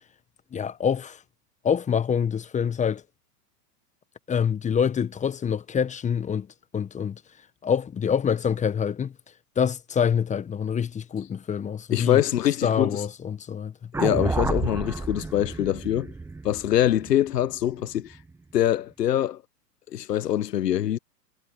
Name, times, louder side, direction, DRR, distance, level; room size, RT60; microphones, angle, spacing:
voice 1, 0.5-1.2 1.6-3.0 4.3-6.5 6.7-7.2 7.6-9.1 9.6-12.2 12.6-13.9, left 7 dB, 15° left, 1.2 m, -26 dB
voice 2, 11.9-13.0 14.0-16.1 16.4-18.2 18.5-19.4 19.9-21.0, left 11 dB, 75° left, 1.1 m, -24 dB
sound 1, 13.9-18.2, right 3 dB, 5° right, 0.9 m, -30 dB
hypercardioid pair, 110°, 48 cm